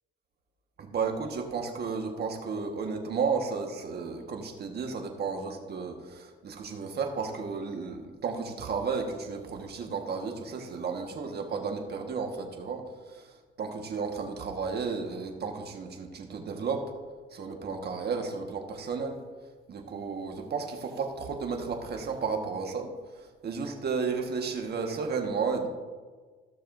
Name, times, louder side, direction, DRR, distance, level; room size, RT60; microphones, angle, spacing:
voice 1, 0.8-13.3 13.6-16.8 17.3-19.2 19.7-22.9 23.4-25.7, right 5 dB, 55° right, 3 dB, 1.5 m, -33 dB
15.5 x 6.7 x 2.6 m, 1.4 s
cardioid pair, 90°, 20 cm